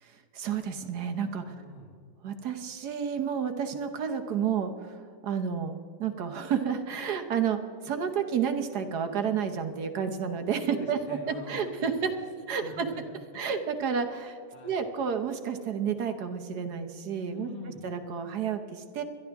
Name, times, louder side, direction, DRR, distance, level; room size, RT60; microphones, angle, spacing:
voice 1, 0.0-1.5 2.2-12.1 12.5-12.9 13.3-14.4 14.6-17.5 17.8-19.0, right 7 dB, 60° right, 7 dB, 1.4 m, -31 dB
voice 2, 1.4-2.0 10.7-12.2 12.6-13.6 14.5-14.8 17.3-17.9, left 2 dB, 30° left, 1 dB, 0.9 m, -44 dB
22.0 x 12.0 x 3.5 m, 2.4 s
omnidirectional pair, 2.0 m